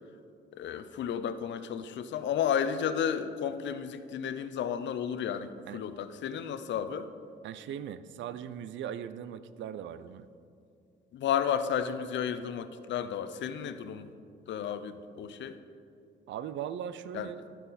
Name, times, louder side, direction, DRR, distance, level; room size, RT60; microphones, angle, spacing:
voice 1, 0.5-7.1 11.1-14.1 14.5-15.6 17.1-17.3, left 8 dB, 65° left, 11 dB, 0.6 m, -32 dB
voice 2, 7.4-10.3 16.3-17.4, right 9 dB, 70° right, 14 dB, 0.4 m, -39 dB
13.0 x 5.7 x 4.1 m, 2.4 s
cardioid pair, 90°, 20 cm